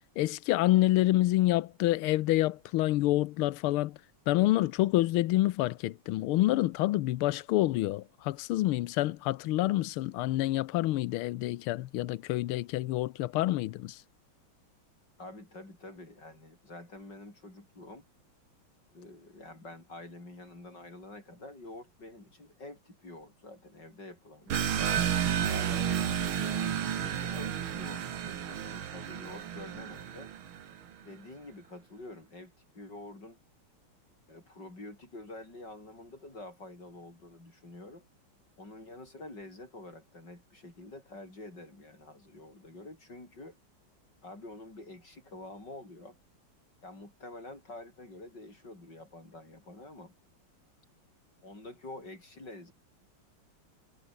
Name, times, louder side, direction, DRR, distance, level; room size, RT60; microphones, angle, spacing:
voice 1, 0.2-4.0 4.3-14.0, left 16 dB, 90° left, 1.6 m, -27 dB
voice 2, 15.2-18.0 18.9-25.1 25.5-30.3 31.0-33.4 34.3-38.1 38.6-43.6 44.2-46.2 46.8-50.1 51.4-52.7, left 2 dB, 55° left, 8.1 m, -47 dB
sound 1, 24.5-30.8, right 9 dB, 75° right, 2.2 m, -31 dB
omnidirectional pair, 2.3 m